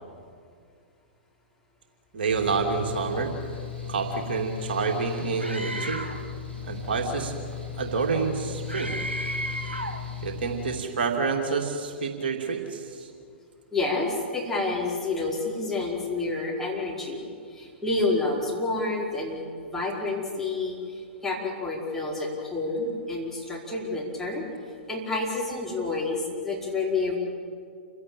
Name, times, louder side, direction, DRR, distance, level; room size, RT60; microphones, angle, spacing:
voice 1, 2.1-3.3 3.9-6.0 6.7-7.4 7.8-9.0 10.2-13.1, right 5 dB, 60° right, 2 dB, 2.8 m, -28 dB
Mechanical fan, 2.3-10.8, left 7 dB, 85° left, 7.1 m, -36 dB
Screaming, 5.4-6.3 8.7-10.0, right 1 dB, 85° right, 1.9 m, -33 dB
voice 2, 13.7-24.5 24.9-27.2, left 3 dB, 5° left, -3 dB, 4.9 m, -29 dB
28.5 x 16.5 x 8.9 m, 2.2 s
figure-of-eight pair, 105°, 6 cm